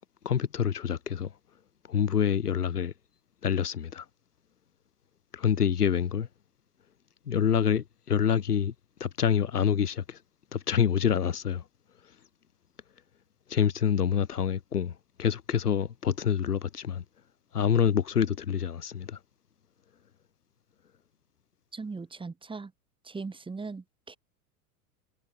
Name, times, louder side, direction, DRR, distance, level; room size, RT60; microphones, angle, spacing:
voice 1, 0.2-1.3 1.9-2.9 3.4-4.0 5.3-6.3 7.3-8.7 9.0-10.2 10.5-11.6 13.5-14.9 15.2-17.0 17.5-19.2, left 8 dB, 85° left, 1.0 m, -26 dB
voice 2, 21.7-22.7 23.0-24.2, right 4 dB, 10° right, 1.7 m, -39 dB
figure-of-eight pair, 85°, 45 cm